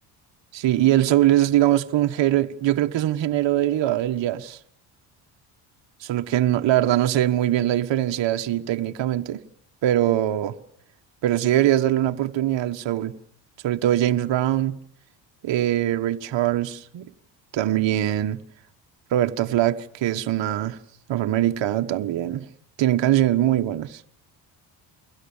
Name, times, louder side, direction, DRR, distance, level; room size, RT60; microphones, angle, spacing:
voice 1, 0.5-4.6 6.0-9.4 9.8-10.5 11.2-13.1 13.6-14.8 15.4-17.1 17.5-18.4 19.1-20.8 21.1-22.5 22.8-24.0, right 13 dB, 60° right, 1.5 m, -22 dB
29.5 x 23.5 x 7.3 m
supercardioid pair, 60°, 49 cm